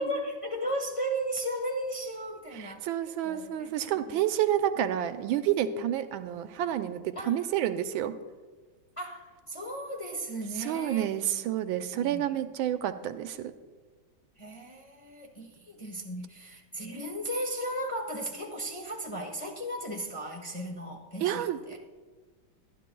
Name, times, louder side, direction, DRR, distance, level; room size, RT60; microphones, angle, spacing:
voice 1, 0.0-2.8 3.2-4.2 7.1-7.5 9.0-11.1 11.9-12.3 14.4-21.8, right 1 dB, 20° left, 1 dB, 0.9 m, -36 dB
voice 2, 2.5-8.1 10.6-13.5 21.2-21.6, right 11 dB, 90° right, 10 dB, 1.5 m, -29 dB
23.5 x 11.0 x 2.3 m, 1.4 s
omnidirectional pair, 2.1 m